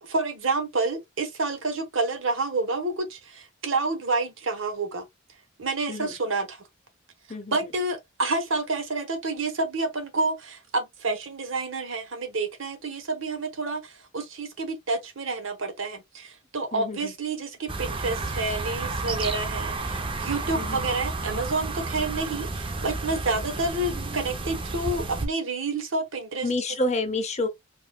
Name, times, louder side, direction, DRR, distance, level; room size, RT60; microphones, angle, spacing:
voice 1, 0.0-5.0 5.6-6.6 7.5-26.5, right 3 dB, 70° right, 1.0 m, -29 dB
voice 2, 16.7-17.1 20.5-20.8 26.4-27.5, left 2 dB, 35° left, 0.7 m, -28 dB
sound 1, 17.7-25.3, right 3 dB, 25° right, 0.5 m, -31 dB
4.7 x 2.6 x 2.2 m
head